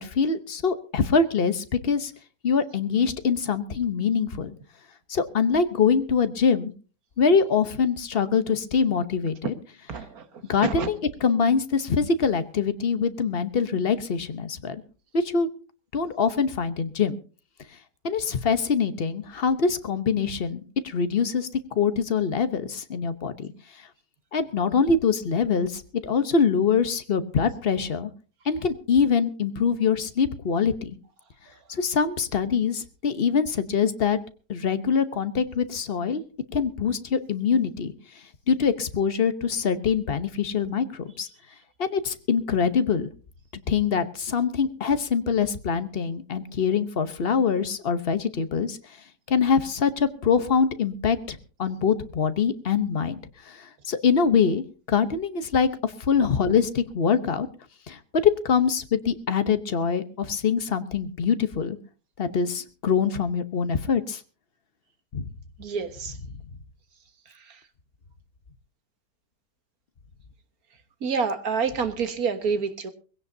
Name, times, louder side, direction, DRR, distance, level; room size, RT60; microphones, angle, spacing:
voice 1, 0.0-2.1 2.4-4.5 5.1-6.7 7.2-9.5 10.5-14.8 15.1-15.5 15.9-17.2 18.0-21.5 21.8-23.5 24.3-28.1 28.5-30.9 31.7-34.2 34.5-36.2 36.5-37.9 38.5-41.3 41.8-43.1 43.7-48.8 49.3-53.2 53.9-54.6 54.9-57.5 57.9-58.0 58.4-61.8 62.2-64.2 65.1-65.3, left 6 dB, 40° left, 11 dB, 0.9 m, -24 dB
voice 2, 9.9-10.2 10.6-10.9 65.6-66.1 71.0-72.9, right 5 dB, 55° right, 9 dB, 1.8 m, -27 dB
21.0 x 16.5 x 2.7 m, 0.35 s
omnidirectional pair, 1.9 m